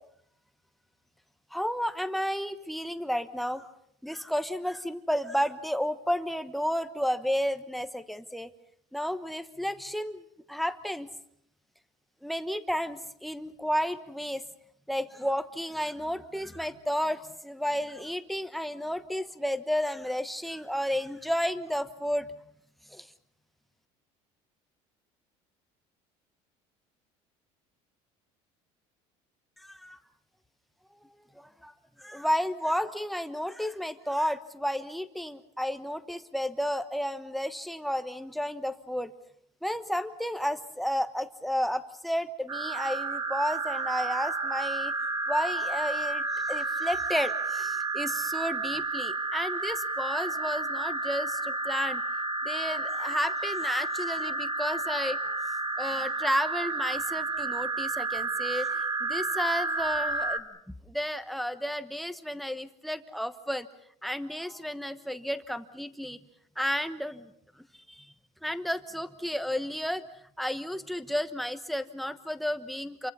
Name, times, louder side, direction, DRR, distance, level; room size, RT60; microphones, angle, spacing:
voice 1, 1.5-3.7 4.0-8.5 8.9-11.1 12.2-14.4 14.9-22.3 22.9-23.1 29.6-30.0 31.3-31.7 32.0-39.1 39.6-44.9 45.3-52.0 52.4-55.3 55.8-63.7 64.0-66.2 66.6-67.3 67.9-68.1 68.4-70.0 70.4-73.1, equal, ahead, 10 dB, 1.1 m, -32 dB
sound 1, 42.5-60.4, right 3 dB, 25° right, 2.0 m, -31 dB
28.0 x 24.5 x 5.5 m, 0.69 s
cardioid pair, 145°, 13 cm